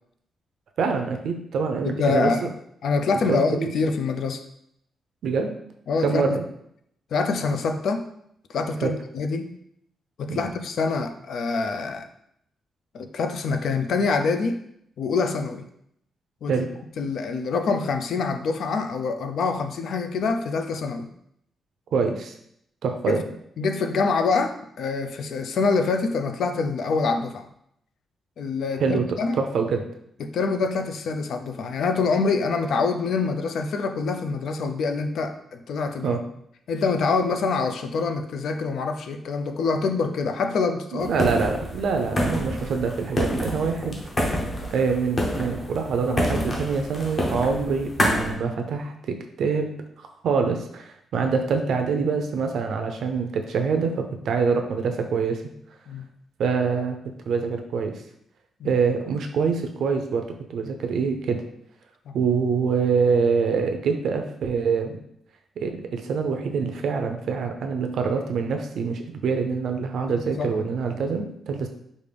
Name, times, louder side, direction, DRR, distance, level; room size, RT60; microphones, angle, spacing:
voice 1, 0.8-2.5 3.1-3.7 5.2-5.6 6.0-6.4 8.8-9.0 10.3-10.6 16.5-16.7 21.9-22.3 22.8-23.2 28.8-29.1 29.3-29.8 36.0-36.2 40.9-44.0 44.7-49.7 50.0-55.4 56.4-57.0 57.3-58.0 58.6-61.4 62.1-65.0 65.6-71.7, right 5 dB, 60° right, 5 dB, 0.5 m, -25 dB
voice 2, 1.8-2.5 2.8-4.4 5.9-6.2 7.1-8.0 8.5-9.5 10.2-12.1 12.9-14.6 15.0-15.7 16.4-16.5 17.0-21.1 23.1-23.2 23.6-27.5 28.4-29.4 30.2-36.2 36.7-41.3 55.9-56.1 58.6-58.8 62.1-62.2 70.1-70.6, left 4 dB, 60° left, 7 dB, 0.4 m, -25 dB
sound 1, 41.0-48.3, equal, 25° left, 0.7 m, -27 dB
5.2 x 2.5 x 3.3 m, 0.73 s
wide cardioid pair, 175°, 0 cm